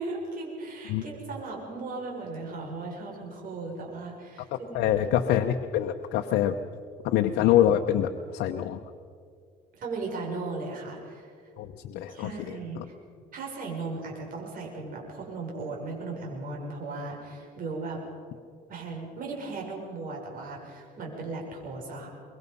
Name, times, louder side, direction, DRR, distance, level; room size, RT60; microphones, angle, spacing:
voice 1, 0.0-5.0 9.8-11.3 12.1-12.9 13.3-18.0 18.7-22.1, right 3 dB, 55° right, -1 dB, 6.6 m, -37 dB
voice 2, 4.7-6.6 7.0-8.8 11.6-12.8, left 11 dB, 85° left, 4 dB, 1.0 m, -25 dB
24.0 x 23.0 x 5.5 m, 2.2 s
cardioid pair, 110°, 17 cm